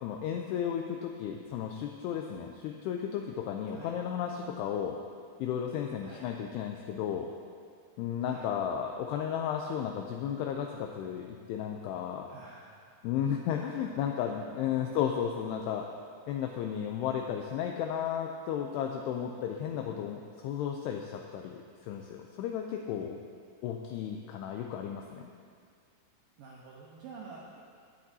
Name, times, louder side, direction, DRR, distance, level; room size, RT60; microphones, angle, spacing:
voice 1, 0.0-5.0 5.4-7.3 8.0-12.3 13.0-15.9 16.3-23.2 23.6-25.3, left 8 dB, 85° left, 2 dB, 2.4 m, -34 dB
voice 2, 3.7-4.3 6.0-6.3 8.2-8.5 12.3-12.9 13.5-13.7 14.7-15.1 26.4-27.6, right 4 dB, 85° right, -4 dB, 2.0 m, -49 dB
18.0 x 8.5 x 2.7 m, 2.1 s
omnidirectional pair, 5.3 m